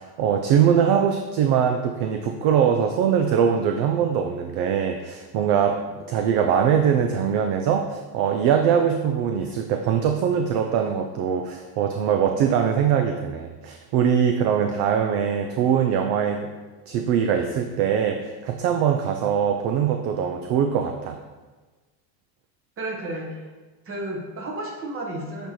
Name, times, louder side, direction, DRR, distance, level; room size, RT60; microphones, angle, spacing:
voice 1, 0.0-5.8 6.1-16.5 16.9-21.2, right 8 dB, 50° right, 5 dB, 0.5 m, -22 dB
voice 2, 22.8-23.4 23.8-25.5, right 1 dB, 25° right, 0 dB, 1.3 m, -32 dB
7.6 x 4.4 x 3.1 m, 1.3 s
supercardioid pair, 130°, 48 cm